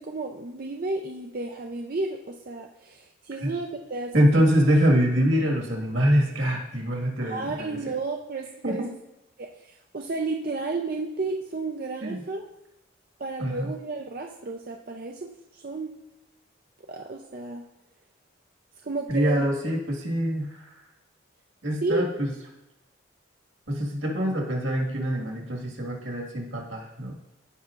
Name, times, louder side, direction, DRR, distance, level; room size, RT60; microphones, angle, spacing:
voice 1, 0.0-4.5 7.2-8.8 9.4-12.5 13.2-15.9 16.9-17.6 18.8-19.4 21.8-22.1, right 3 dB, 45° right, 1 dB, 0.5 m, -32 dB
voice 2, 4.1-7.8 8.6-8.9 12.0-12.2 13.4-13.7 19.1-20.7 21.6-22.3 23.7-27.1, equal, 75° right, -1 dB, 1.8 m, -24 dB
15.0 x 5.7 x 2.5 m, 0.91 s
head